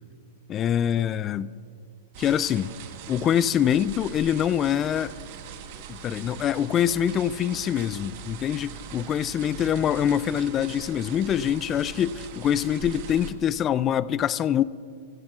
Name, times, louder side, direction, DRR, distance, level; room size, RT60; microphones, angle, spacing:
voice 1, 0.5-1.5 2.2-2.8 3.1-5.1 5.9-14.6, left 9 dB, 30° left, 17 dB, 0.4 m, -24 dB
sound 1, 2.1-13.3, right 7 dB, 55° right, 1.3 m, -41 dB
25.5 x 16.0 x 2.5 m, 2.2 s
hypercardioid pair, 115°, 0 cm